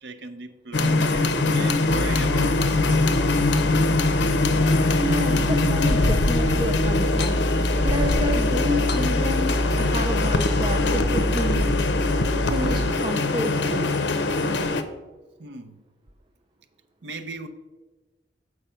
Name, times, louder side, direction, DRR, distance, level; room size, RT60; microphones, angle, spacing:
voice 1, 0.0-3.2 15.4-15.8 17.0-17.5, right 2 dB, 75° right, 0.7 m, -38 dB
sound 1, 0.7-14.8, left 2 dB, 90° left, 0.6 m, -23 dB
sound 2, 1.9-12.9, left 1 dB, 90° right, 1.1 m, -27 dB
voice 2, 5.0-7.4 7.8-11.7 12.5-13.9, equal, 30° right, 0.5 m, -30 dB
sound 3, 7.2-7.7 8.1-8.6 8.9-9.9 10.4-10.9 11.4-11.9, left 5 dB, 65° left, 0.9 m, -37 dB
7.4 x 4.8 x 5.5 m
head